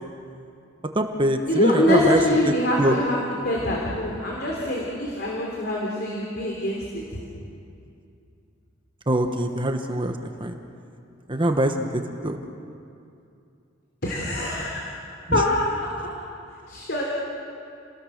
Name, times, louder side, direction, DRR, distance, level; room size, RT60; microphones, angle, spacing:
voice 1, 0.9-2.2 2.8-2.9 9.1-10.6 11.3-11.9 12.2-12.4 15.3-15.4, right 1 dB, 25° right, 5 dB, 1.3 m, -23 dB
voice 2, 1.5-7.2 14.0-14.9 15.3-15.7 16.7-17.0, left 1 dB, 55° left, -3 dB, 3.6 m, -24 dB
30.0 x 20.0 x 6.6 m, 2.6 s
head